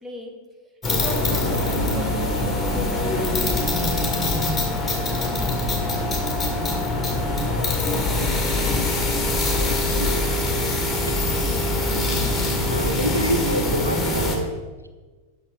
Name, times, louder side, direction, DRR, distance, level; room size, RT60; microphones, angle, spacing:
voice 1, 0.0-0.3 0.9-4.2 4.7-5.5, equal, 15° right, 2 dB, 1.8 m, -36 dB
sound 1, 0.8-14.4, left 2 dB, 15° left, 2.0 m, -23 dB
voice 2, 9.6-10.3 11.1-11.3 12.0-12.2 12.7-14.5, equal, 90° right, 7 dB, 0.6 m, -28 dB
8.0 x 5.9 x 6.3 m, 1.3 s
figure-of-eight pair, 90°, 0 cm